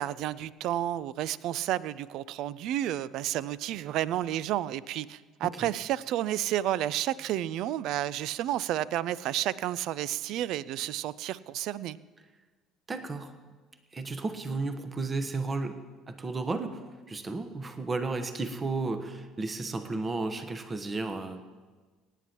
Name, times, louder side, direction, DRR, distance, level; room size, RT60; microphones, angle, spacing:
voice 1, 0.0-12.0, right 12 dB, 55° right, 20 dB, 0.4 m, -31 dB
voice 2, 12.9-13.3 13.9-15.8 16.1-16.8 17.1-21.4, right 3 dB, 30° right, 9 dB, 1.2 m, -33 dB
25.0 x 10.0 x 3.0 m, 1.3 s
figure-of-eight pair, 55°, 0 cm